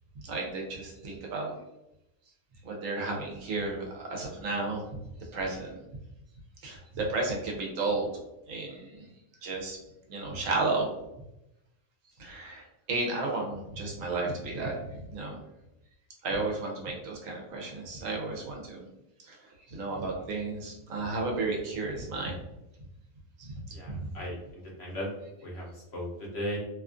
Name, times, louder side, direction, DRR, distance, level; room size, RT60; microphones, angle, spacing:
voice 1, 0.2-1.5 2.6-4.8 5.3-5.8 6.6-8.1 8.5-9.0 9.4-9.8 10.1-10.9 12.2-15.4 16.2-18.9 19.2-19.4 19.7-22.4 23.4-23.5 23.9-24.0, right 3 dB, 70° right, -1 dB, 1.1 m, -33 dB
voice 2, 23.7-25.1 25.4-26.6, equal, 60° left, -3 dB, 0.8 m, -37 dB
2.8 x 2.4 x 2.4 m, 0.90 s
omnidirectional pair, 1.5 m